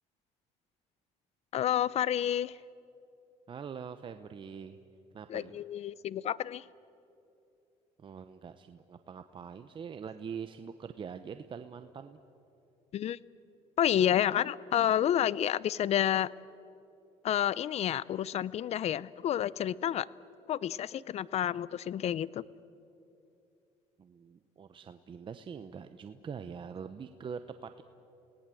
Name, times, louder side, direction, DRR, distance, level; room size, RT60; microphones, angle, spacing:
voice 1, 1.5-2.6 5.3-6.6 12.9-13.2 13.8-16.3 17.2-20.1 20.5-22.4, left 10 dB, 50° left, 21 dB, 0.6 m, -29 dB
voice 2, 3.5-4.8 5.1-5.6 8.0-12.2 24.0-27.8, right 6 dB, 35° right, 9 dB, 0.9 m, -44 dB
29.5 x 18.5 x 7.8 m, 2.8 s
supercardioid pair, 95°, 14 cm